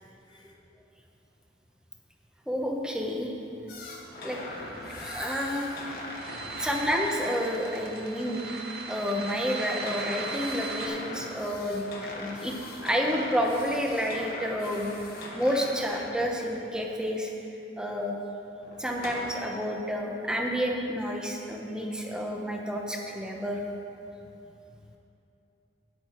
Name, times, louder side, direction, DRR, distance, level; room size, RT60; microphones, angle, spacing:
voice 1, 0.3-0.6 6.6-6.8 24.2-25.0, left 3 dB, 25° left, 3 dB, 0.4 m, -56 dB
voice 2, 2.5-3.3 4.2-4.4 5.0-5.8 6.6-11.9 12.1-17.3 17.8-18.1 18.8-23.6, equal, 5° right, 0 dB, 0.9 m, -30 dB
sound 1, 3.7-7.4 9.6-16.2 18.6-19.2, left 1 dB, 55° left, 1.3 m, -41 dB
sound 2, 4.3-10.9, right 3 dB, 60° right, 1.4 m, -38 dB
9.5 x 9.4 x 4.4 m, 2.8 s
head